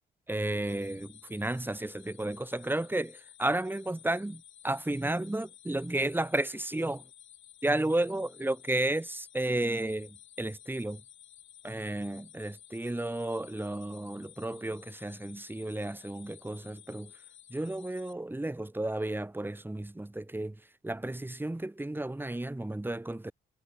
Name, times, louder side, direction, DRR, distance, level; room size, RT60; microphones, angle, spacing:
voice 1, 0.3-7.1 7.6-11.0 11.6-17.2 17.5-23.3, right 1 dB, 10° right, 4.3 m, -33 dB
sound 1, 0.6-18.1, left 11 dB, 75° left, 7.3 m, -54 dB
cardioid pair, 90°, 20 cm